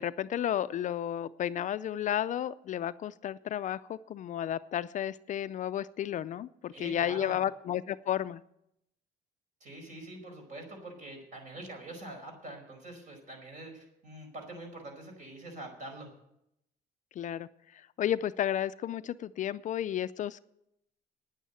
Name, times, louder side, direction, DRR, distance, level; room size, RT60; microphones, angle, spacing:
voice 1, 0.0-8.4 17.2-17.5 18.0-20.4, left 10 dB, 50° left, 14 dB, 0.4 m, -32 dB
voice 2, 6.7-7.4 9.6-16.1, right 1 dB, 50° right, 3 dB, 5.0 m, -44 dB
9.8 x 9.3 x 9.0 m, 0.80 s
cardioid pair, 110°, 17 cm